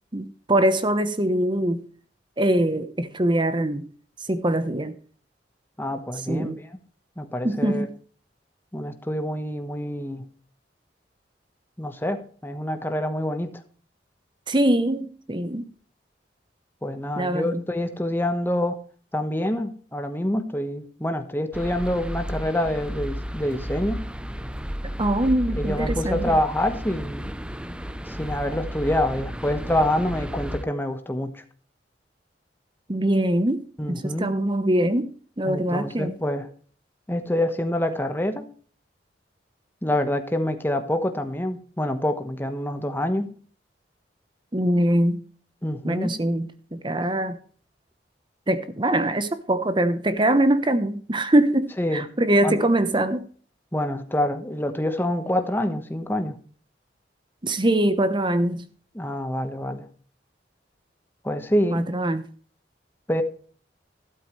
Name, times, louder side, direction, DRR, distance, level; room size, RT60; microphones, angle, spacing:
voice 1, 0.1-1.8 2.4-3.8 4.3-4.9 6.3-6.6 7.4-7.9 14.5-15.7 17.2-17.6 25.0-26.4 32.9-33.6 33.9-35.1 35.4-36.1 44.5-45.2 45.8-47.4 48.5-53.2 57.4-58.6 61.7-62.3, right 1 dB, 25° right, 1.0 m, -23 dB
voice 2, 5.8-6.8 7.2-7.9 8.7-10.3 11.8-13.6 16.8-18.8 19.1-24.0 25.5-27.3 28.1-31.4 33.8-34.3 35.4-36.5 37.1-38.4 39.8-43.3 45.6-46.2 51.8-52.0 52.4-52.6 53.7-56.4 58.9-59.9 61.2-61.8 63.1-63.2, left 1 dB, 10° left, 1.2 m, -26 dB
sound 1, 21.5-30.6, equal, 5° right, 0.6 m, -33 dB
12.5 x 12.5 x 3.2 m
head